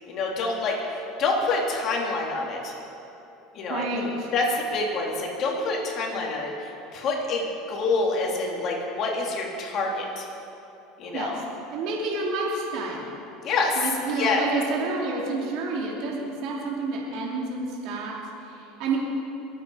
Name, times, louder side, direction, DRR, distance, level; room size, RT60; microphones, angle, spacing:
voice 1, 0.1-2.7 3.5-3.8 4.3-10.3 11.0-11.4 13.4-13.9 14.1-14.4, left 3 dB, 50° left, -1 dB, 3.4 m, -27 dB
voice 2, 3.7-4.3 11.1-11.3 11.7-13.0 13.8-19.0, right 3 dB, 65° right, -3 dB, 2.9 m, -29 dB
23.0 x 9.0 x 5.0 m, 2.9 s
supercardioid pair, 105°, 0 cm